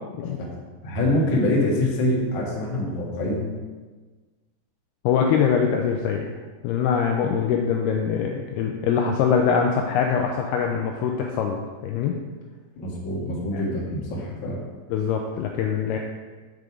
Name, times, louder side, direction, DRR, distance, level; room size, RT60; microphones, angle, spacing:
voice 1, 0.8-3.5 12.8-14.6, left 1 dB, 60° left, -4 dB, 1.2 m, -25 dB
voice 2, 5.0-6.3 6.6-12.2 13.5-13.6 14.9-16.0, left 7 dB, 85° left, 2 dB, 2.3 m, -23 dB
7.7 x 5.3 x 4.8 m, 1.4 s
omnidirectional pair, 5.1 m